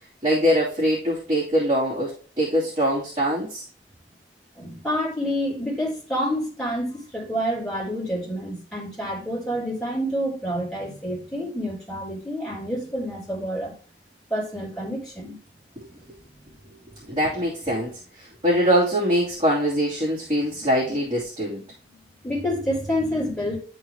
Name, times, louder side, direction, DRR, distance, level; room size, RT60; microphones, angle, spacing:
voice 1, 0.2-3.6 15.8-15.9 17.1-21.6, equal, 30° right, -9 dB, 2.7 m, -23 dB
voice 2, 4.6-13.7 14.3-15.4 20.5-20.9 21.9-23.6, equal, 5° left, -7 dB, 3.9 m, -28 dB
11.0 x 4.0 x 3.0 m, 0.40 s
head